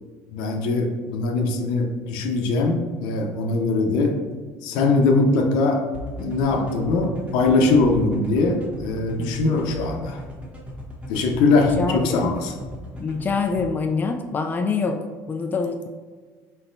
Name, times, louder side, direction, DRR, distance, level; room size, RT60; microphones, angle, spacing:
voice 1, 0.3-4.2 4.6-5.9 6.2-10.2 11.1-12.5, left 3 dB, 75° left, 3 dB, 0.7 m, -21 dB
sound 1, 5.9-13.6, left 1 dB, 15° right, 1.1 m, -37 dB
voice 2, 9.2-9.5 11.6-12.3 13.0-15.9, left 4 dB, 25° left, 4 dB, 0.4 m, -26 dB
4.2 x 4.0 x 2.6 m, 1.5 s
supercardioid pair, 90°, 7 cm